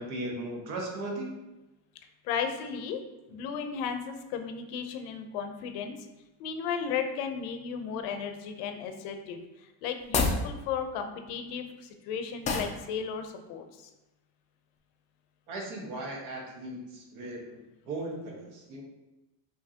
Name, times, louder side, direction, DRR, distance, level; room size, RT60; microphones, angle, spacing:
voice 1, 0.0-1.4 15.5-17.6 17.9-18.8, right 1 dB, 70° right, -1 dB, 1.4 m, -37 dB
voice 2, 2.2-3.0 3.3-5.9 6.4-13.9, left 7 dB, 75° left, 6 dB, 0.8 m, -35 dB
sound 1, 10.0-10.5 12.4-12.8, left 3 dB, 20° left, 0.3 m, -27 dB
5.7 x 2.9 x 2.8 m, 1.0 s
cardioid pair, 140°, 43 cm